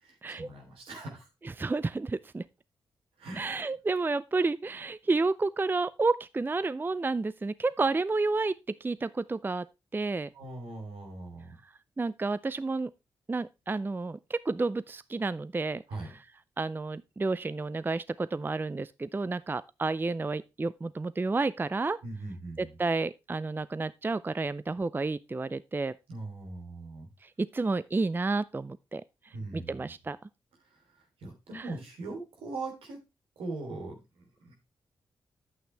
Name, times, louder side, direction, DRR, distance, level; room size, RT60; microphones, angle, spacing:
voice 1, 0.0-1.3 3.2-3.4 10.3-11.6 15.9-16.2 22.0-22.8 26.1-27.1 29.3-29.9 30.7-30.8 31.2-33.0 33.4-34.5, right 2 dB, 80° right, 3.2 m, -40 dB
voice 2, 1.6-2.4 3.4-8.6 8.8-9.7 9.9-10.3 12.0-12.9 13.3-15.8 16.6-22.0 22.6-25.9 27.2-29.0 29.5-30.2 31.5-31.7, right 3 dB, 20° right, 0.4 m, -30 dB
9.2 x 8.0 x 3.3 m
supercardioid pair, 45°, 9 cm